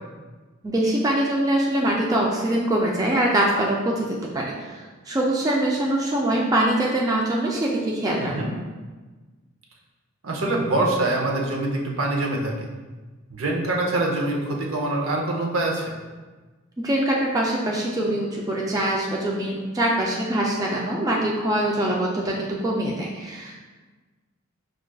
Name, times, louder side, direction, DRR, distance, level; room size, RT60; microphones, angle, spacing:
voice 1, 0.6-4.1 4.3-4.8 5.1-8.3 16.8-23.6, right 1 dB, 15° right, -3 dB, 0.3 m, -23 dB
voice 2, 8.2-8.5 10.2-12.5 13.3-15.9, right 2 dB, 70° right, -1 dB, 0.7 m, -24 dB
6.0 x 2.4 x 2.2 m, 1.3 s
head